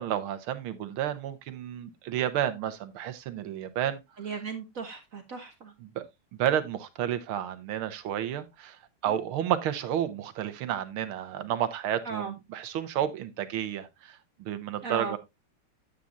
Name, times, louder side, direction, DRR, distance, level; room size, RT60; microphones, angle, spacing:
voice 1, 0.0-4.0 5.8-6.0 6.4-15.2, right 10 dB, 75° right, 1.7 m, -31 dB
voice 2, 4.2-5.7 9.1-9.2 12.0-12.3 14.8-15.2, right 5 dB, 50° right, 1.1 m, -36 dB
9.1 x 8.4 x 2.5 m
omnidirectional pair, 2.4 m